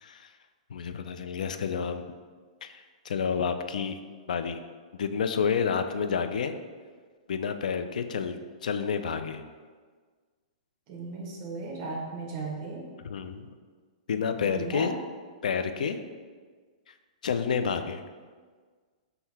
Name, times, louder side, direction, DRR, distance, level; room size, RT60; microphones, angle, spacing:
voice 1, 0.0-0.3 0.7-2.1 2.6-4.0 4.3-4.6 4.9-6.5 7.3-9.4 13.0-13.5 14.1-14.9 15.4-16.0 16.9-17.0 17.2-18.0, left 6 dB, 85° left, 9 dB, 0.3 m, -29 dB
voice 2, 10.9-12.8 14.4-14.9, right 3 dB, 35° right, 0 dB, 0.9 m, -36 dB
3.8 x 2.7 x 4.1 m, 1.5 s
hypercardioid pair, 145°, 4 cm